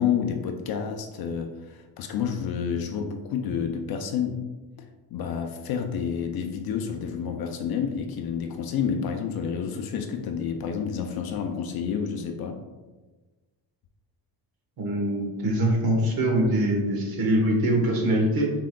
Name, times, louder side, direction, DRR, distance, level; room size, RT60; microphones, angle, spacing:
voice 1, 0.0-4.4 5.1-12.6, left 7 dB, 60° left, 4 dB, 0.5 m, -29 dB
voice 2, 14.8-18.5, right 1 dB, 55° right, 0 dB, 1.2 m, -23 dB
5.9 x 3.7 x 2.2 m, 1.2 s
cardioid pair, 135°, 42 cm